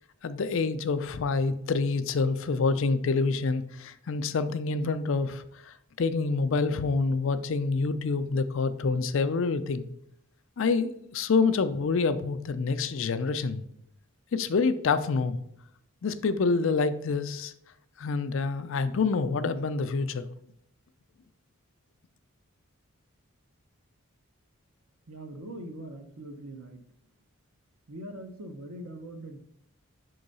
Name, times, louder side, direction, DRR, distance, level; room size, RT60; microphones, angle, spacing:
voice 1, 0.2-9.9 10.6-13.6 14.3-15.4 16.0-17.5 18.0-20.3, left 4 dB, 60° left, 11 dB, 0.4 m, -27 dB
voice 2, 25.1-26.8 27.9-29.4, right 1 dB, 75° right, 6 dB, 0.9 m, -42 dB
5.4 x 3.9 x 5.3 m, 0.74 s
head